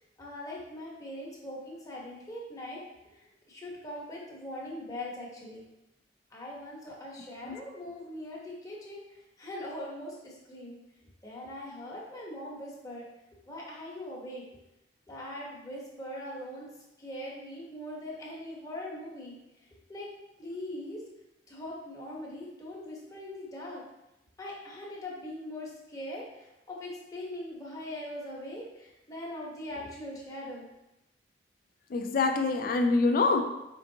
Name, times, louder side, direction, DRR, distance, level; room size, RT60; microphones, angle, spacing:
voice 1, 0.2-2.8 3.5-5.7 6.3-9.0 9.4-10.8 11.2-13.0 13.5-14.4 15.1-16.7 17.0-19.4 19.9-20.1 20.4-21.0 21.5-23.8 24.4-30.7, left 1 dB, 20° left, -4 dB, 1.0 m, -41 dB
voice 2, 31.9-33.5, left 3 dB, 55° left, 5 dB, 0.4 m, -25 dB
4.5 x 3.6 x 2.7 m, 0.93 s
head